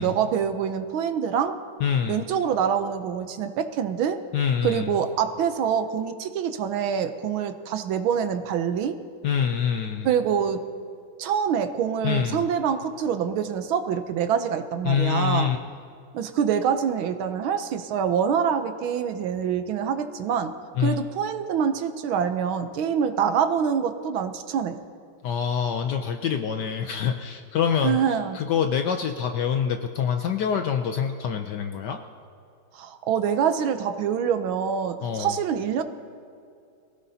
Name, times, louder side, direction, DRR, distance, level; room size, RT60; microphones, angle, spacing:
voice 1, 0.0-1.6 2.1-4.2 4.6-9.0 10.0-10.6 11.2-15.5 16.1-20.5 20.8-24.8 27.8-28.4 32.7-35.8, right 7 dB, 75° right, 9 dB, 1.5 m, -25 dB
voice 2, 1.8-2.2 4.3-4.9 9.2-10.1 12.0-12.5 14.8-15.6 20.8-21.0 25.2-28.0 28.3-32.0 35.0-35.3, left 7 dB, 70° left, 6 dB, 1.1 m, -25 dB
23.0 x 16.5 x 2.8 m, 2.4 s
omnidirectional pair, 2.4 m